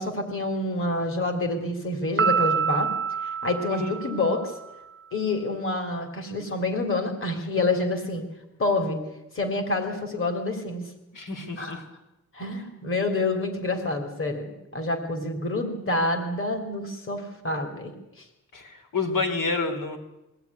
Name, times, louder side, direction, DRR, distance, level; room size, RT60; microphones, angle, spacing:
voice 1, 0.0-2.9 3.2-4.5 5.1-8.2 8.6-9.0 9.3-10.9 11.6-11.8 12.3-18.3, left 2 dB, 40° left, 5 dB, 3.4 m, -27 dB
Piano, 2.2-4.7, right 6 dB, 40° right, 0.8 m, -27 dB
voice 2, 11.1-11.8 18.5-20.0, left 4 dB, 85° left, 5 dB, 4.1 m, -29 dB
22.5 x 16.5 x 9.7 m, 0.92 s
wide cardioid pair, 160°, 32 cm